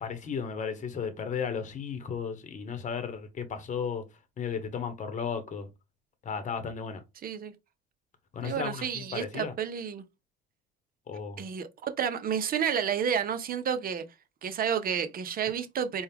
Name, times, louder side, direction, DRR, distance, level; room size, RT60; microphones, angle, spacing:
voice 1, 0.0-4.0 4.4-5.7 6.2-7.0 8.3-9.5 11.1-11.4, left 6 dB, 35° left, 1.0 m, -34 dB
voice 2, 7.2-7.5 8.4-10.0 11.4-14.0 14.4-16.0, right 8 dB, 45° right, 0.8 m, -30 dB
4.3 x 2.3 x 3.5 m
supercardioid pair, 95°, 21 cm